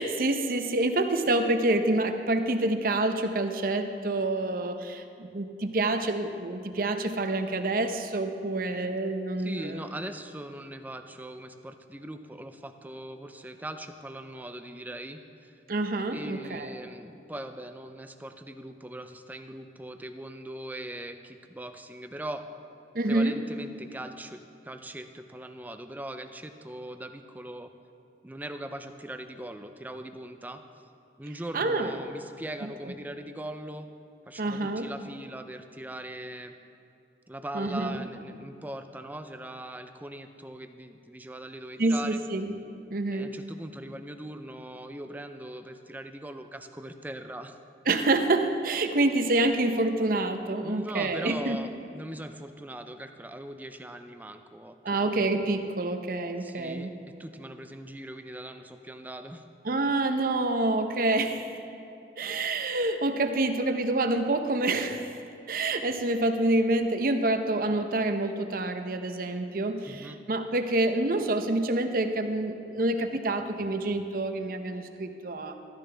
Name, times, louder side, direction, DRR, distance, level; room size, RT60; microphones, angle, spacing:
voice 1, 0.0-9.8 15.7-16.7 22.9-23.4 31.5-32.0 32.6-32.7 34.4-34.9 37.5-38.0 41.8-42.6 42.9-43.3 47.9-51.6 54.8-56.9 59.6-61.5 62.2-65.2 65.5-75.5, right 2 dB, 55° right, 7 dB, 0.7 m, -27 dB
voice 2, 9.4-15.5 16.1-22.5 23.1-27.7 28.2-30.6 31.2-33.9 34.3-36.5 37.3-42.2 43.1-47.6 50.6-55.2 56.4-59.4 69.8-70.2, right 1 dB, 10° right, 7 dB, 0.5 m, -40 dB
13.5 x 13.5 x 3.4 m, 2.6 s
head